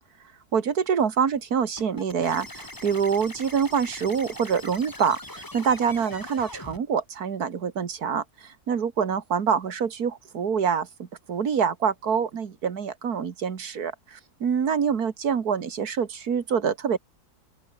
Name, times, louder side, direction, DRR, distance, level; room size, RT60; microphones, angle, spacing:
voice 1, 0.5-17.0, right 7 dB, 75° right, 2.2 m, -26 dB
sound 1, 1.8-6.8, left 1 dB, 15° left, 2.1 m, -41 dB
open air
omnidirectional pair, 1.7 m